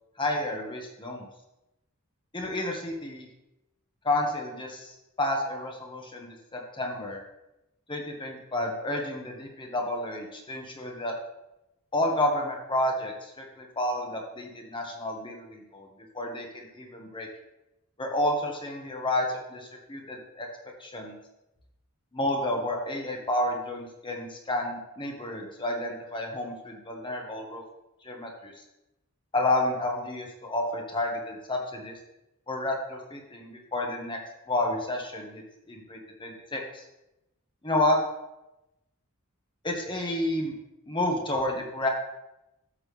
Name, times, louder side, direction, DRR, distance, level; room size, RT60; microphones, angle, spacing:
voice 1, 0.2-1.3 2.3-3.3 4.0-7.2 7.9-11.1 11.9-15.9 16.1-17.3 18.0-20.5 20.8-21.1 22.1-27.6 28.0-28.5 29.3-31.9 32.5-34.2 34.5-35.4 35.7-36.8 37.6-38.0 39.6-40.5 40.9-41.9, left 1 dB, 25° left, 1 dB, 1.6 m, -30 dB
13.0 x 7.5 x 3.4 m, 0.93 s
head